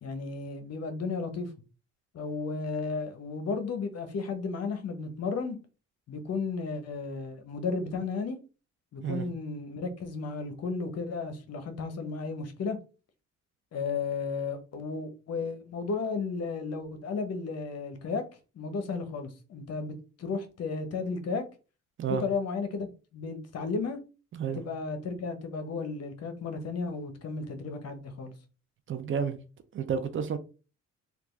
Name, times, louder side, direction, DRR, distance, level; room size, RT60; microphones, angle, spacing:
voice 1, 0.0-1.5 2.1-5.6 6.1-8.4 8.9-12.8 13.7-18.2 18.5-21.4 22.2-24.0 24.6-28.3, left 4 dB, 55° left, 0.8 m, -34 dB
voice 2, 28.9-29.4 29.7-30.4, right 7 dB, 40° right, 0.5 m, -30 dB
3.4 x 2.3 x 3.1 m
cardioid pair, 90°, 30 cm